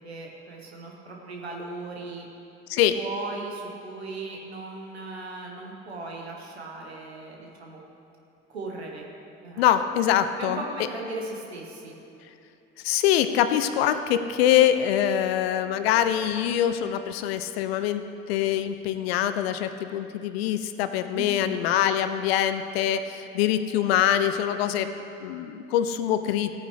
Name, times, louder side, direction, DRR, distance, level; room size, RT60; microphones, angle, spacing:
voice 1, 0.0-2.3 2.9-7.8 8.5-9.1 9.4-9.7 10.4-12.0 21.1-21.6, right 2 dB, 85° right, 0 dB, 1.2 m, -37 dB
voice 2, 9.6-10.6 12.8-24.9 25.2-26.5, left 10 dB, 70° left, 11 dB, 0.5 m, -24 dB
15.5 x 9.3 x 3.2 m, 2.8 s
figure-of-eight pair, 50°, 32 cm